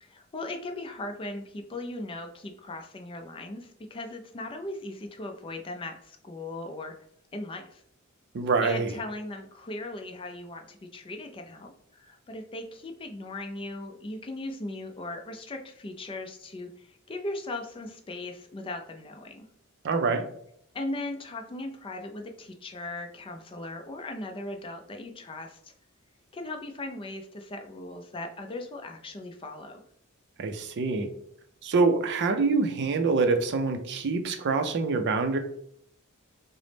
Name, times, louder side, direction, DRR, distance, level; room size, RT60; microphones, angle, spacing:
voice 1, 0.0-6.9 7.3-7.8 8.6-19.4 20.7-25.7 26.3-29.8, left 2 dB, 25° left, 4 dB, 0.4 m, -38 dB
voice 2, 8.3-8.9 19.8-20.2 30.4-31.1 31.6-35.4, right 4 dB, 55° right, 7 dB, 0.4 m, -25 dB
3.8 x 2.0 x 3.3 m, 0.68 s
head